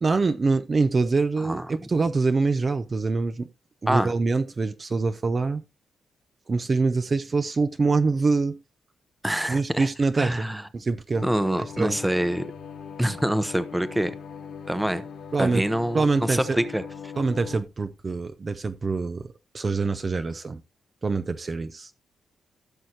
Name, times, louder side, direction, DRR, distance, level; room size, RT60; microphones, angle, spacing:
voice 1, 0.0-3.5 3.8-5.6 6.5-8.6 9.5-10.5 10.7-11.2 11.8-12.0 15.3-15.6 15.9-16.6 17.2-20.6 21.0-21.9, right 4 dB, 35° right, 0.6 m, -25 dB
voice 2, 9.2-9.9 10.2-10.6 11.2-12.5 13.0-14.1 14.7-15.0 15.4-17.1, right 1 dB, 5° right, 0.8 m, -26 dB
sound 1, 11.1-17.6, left 6 dB, 85° left, 2.8 m, -40 dB
15.5 x 6.4 x 2.9 m
cardioid pair, 85°, 0 cm